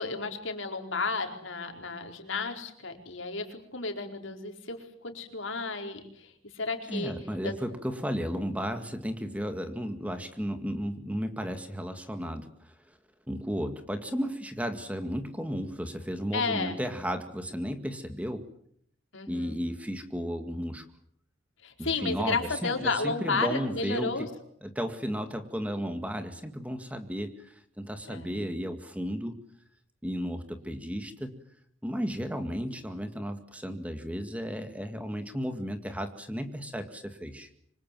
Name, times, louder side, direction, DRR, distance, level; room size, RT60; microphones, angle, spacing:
voice 1, 0.0-7.1 7.4-7.6 16.3-16.8 19.1-19.6 21.6-24.3 28.1-28.3, left 4 dB, 70° left, 4 dB, 4.6 m, -32 dB
voice 2, 6.9-13.0 13.3-18.5 19.3-20.8 21.8-24.3 24.6-29.4 30.0-31.3 31.8-37.5, equal, 5° right, 7 dB, 2.0 m, -34 dB
26.5 x 25.5 x 7.6 m, 0.66 s
head